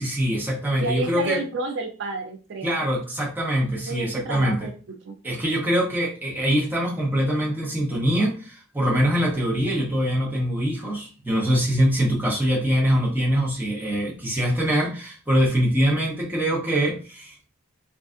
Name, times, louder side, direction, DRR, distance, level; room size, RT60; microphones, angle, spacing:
voice 1, 0.0-1.4 2.6-4.7 5.2-17.5, equal, 10° right, -3 dB, 0.7 m, -23 dB
voice 2, 0.8-2.8 3.9-4.7 5.0-5.1, right 3 dB, 55° right, 3 dB, 0.4 m, -30 dB
3.2 x 2.5 x 2.4 m, 0.36 s
head